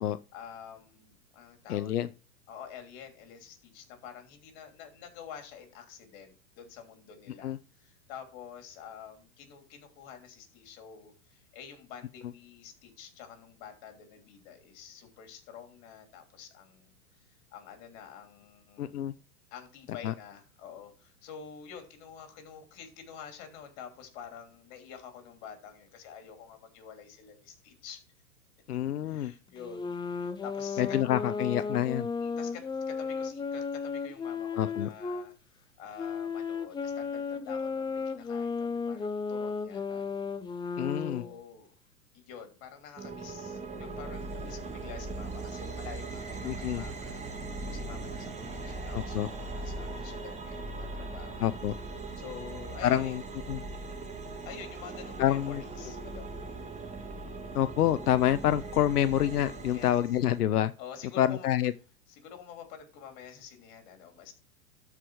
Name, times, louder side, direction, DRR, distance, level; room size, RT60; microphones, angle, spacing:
voice 1, 0.3-2.0 2.5-17.0 17.3-19.0 19.5-28.0 29.0-31.0 32.2-40.2 41.0-41.7 42.1-47.2 47.6-51.5 52.2-53.2 54.4-56.5 59.7-60.0 60.8-61.5 62.1-64.3, left 7 dB, 50° left, 5 dB, 3.1 m, -48 dB
voice 2, 1.7-2.1 7.4-7.6 18.8-19.1 20.0-20.1 28.7-29.3 30.8-32.1 34.6-34.9 40.8-41.2 46.4-46.8 48.9-49.3 51.4-51.7 52.8-53.2 53.5-53.6 55.2-55.6 57.5-60.7 61.2-61.7, left 11 dB, 90° left, 13 dB, 0.6 m, -27 dB
sound 1, 29.6-35.3 36.0-41.3, left 5 dB, 10° left, 0.6 m, -34 dB
sound 2, 43.0-60.4, right 3 dB, 15° right, 1.6 m, -40 dB
13.0 x 4.9 x 4.7 m, 0.36 s
hypercardioid pair, 110°, 45 cm